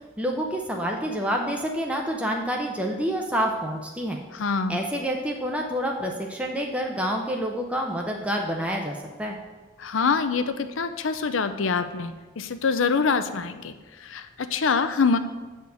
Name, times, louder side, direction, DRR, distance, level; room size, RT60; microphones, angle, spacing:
voice 1, 0.2-4.2 4.7-9.4, equal, 5° right, 1 dB, 0.6 m, -28 dB
voice 2, 4.3-4.8 9.8-15.2, left 5 dB, 85° left, 10 dB, 0.6 m, -25 dB
7.8 x 4.4 x 6.9 m, 1.3 s
head